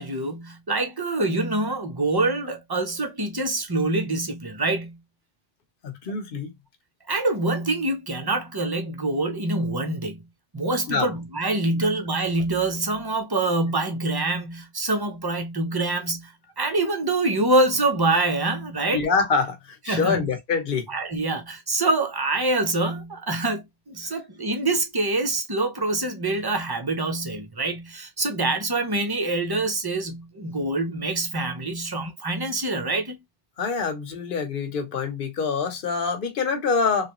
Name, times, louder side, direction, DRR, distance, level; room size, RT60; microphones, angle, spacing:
voice 1, 0.0-5.0 7.1-10.2 10.5-19.0 19.9-20.3 20.9-33.2, right 2 dB, 25° right, 0.5 m, -25 dB
voice 2, 5.8-6.5 10.9-11.1 11.7-11.9 18.9-20.9 24.0-24.2 33.6-37.1, left 5 dB, 50° left, 1.0 m, -26 dB
3.2 x 2.4 x 3.0 m
omnidirectional pair, 1.2 m